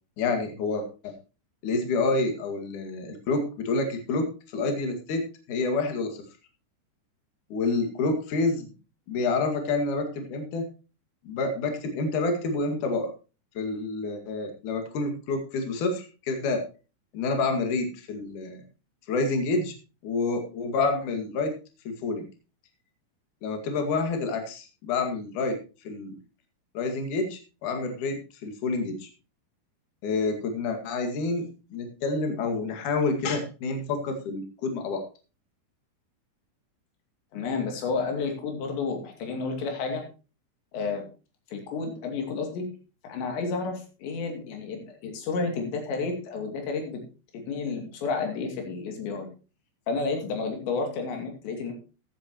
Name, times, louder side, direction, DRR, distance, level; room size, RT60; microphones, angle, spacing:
voice 1, 0.2-1.1 1.6-6.2 7.5-8.7 9.1-10.6 11.2-13.1 13.5-16.6 17.1-18.6 19.1-19.7 20.0-21.5 21.8-22.3 23.4-25.6 25.8-26.2 26.7-29.1 30.0-35.0, left 3 dB, 50° left, 5 dB, 3.0 m, -28 dB
voice 2, 37.3-40.1 40.7-41.1 41.5-42.7 43.0-47.0 47.3-49.3 49.9-51.7, left 4 dB, 70° left, 3 dB, 4.7 m, -31 dB
15.0 x 10.0 x 3.0 m, 0.33 s
omnidirectional pair, 5.5 m